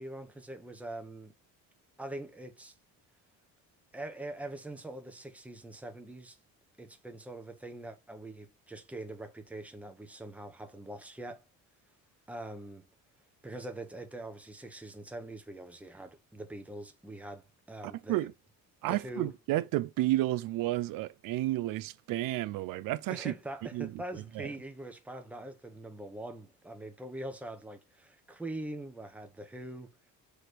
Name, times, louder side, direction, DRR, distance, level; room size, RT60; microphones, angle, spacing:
voice 1, 0.0-1.3 2.0-2.7 3.9-6.4 6.8-11.4 12.3-12.8 13.4-18.3 18.9-19.3 23.1-29.9, right 1 dB, 5° right, 0.8 m, -43 dB
voice 2, 18.8-23.3 23.7-23.9 24.4-24.5, right 16 dB, 75° right, 0.5 m, -31 dB
6.4 x 3.0 x 5.0 m
cardioid pair, 150°, 34 cm